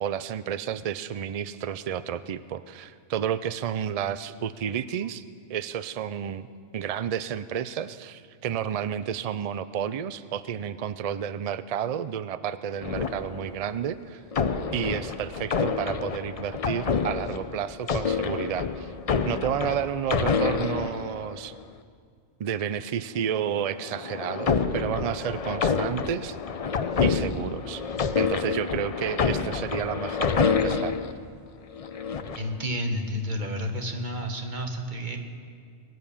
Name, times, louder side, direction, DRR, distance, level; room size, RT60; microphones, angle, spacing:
voice 1, 0.0-5.2 5.5-6.5 6.7-14.2 14.7-18.9 19.3-21.5 22.4-26.4 27.0-27.8 28.2-30.9, right 9 dB, 80° right, 14 dB, 0.3 m, -31 dB
sound 1, 12.8-13.7 14.3-21.6 23.5-31.1 31.7-32.5, left 5 dB, 40° left, 0.5 m, -28 dB
voice 2, 32.3-35.2, equal, 40° right, 4 dB, 1.6 m, -30 dB
21.0 x 9.5 x 7.1 m, 2.2 s
omnidirectional pair, 1.2 m